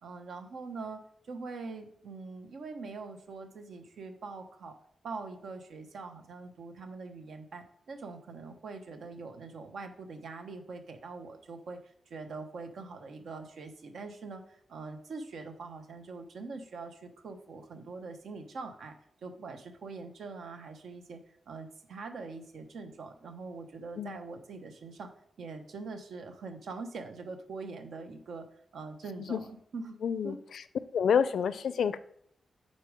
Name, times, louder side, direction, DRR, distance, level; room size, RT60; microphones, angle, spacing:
voice 1, 0.0-1.0 1.3-4.8 5.0-11.8 12.1-18.9 19.2-21.2 21.5-25.1 25.4-28.5 28.7-30.0 30.2-30.4, right 4 dB, 80° right, 6 dB, 0.9 m, -43 dB
voice 2, 30.0-30.6 30.9-32.0, left 7 dB, 80° left, 14 dB, 0.4 m, -28 dB
8.3 x 4.2 x 5.0 m, 0.66 s
wide cardioid pair, 135°, 0 cm